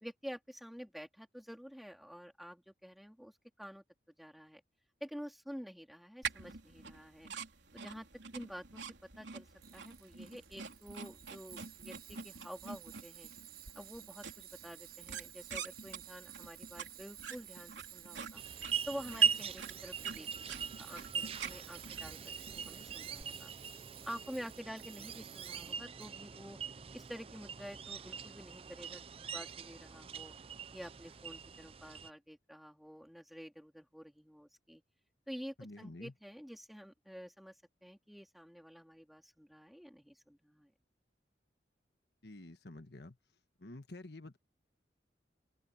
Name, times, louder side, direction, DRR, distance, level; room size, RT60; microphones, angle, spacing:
voice 1, 0.0-3.8 4.2-4.6 5.0-7.3 7.7-8.1 8.3-8.8 9.2-9.5 9.7-13.3 13.7-18.4 18.9-23.5 24.0-26.6 26.9-29.0 29.3-30.3 30.7-34.8 35.3-37.5 37.8-40.7, equal, ahead, 3.2 m, -49 dB
sound 1, 6.2-23.2, right 6 dB, 85° right, 3.4 m, -48 dB
Tools, 9.6-26.1, right 13 dB, 55° right, 1.6 m, -54 dB
sound 2, 18.3-32.1, right 6 dB, 30° right, 0.5 m, -40 dB
voice 2, 35.6-36.1 42.2-43.2 43.6-44.4, left 2 dB, 65° left, 1.4 m, -49 dB
open air
head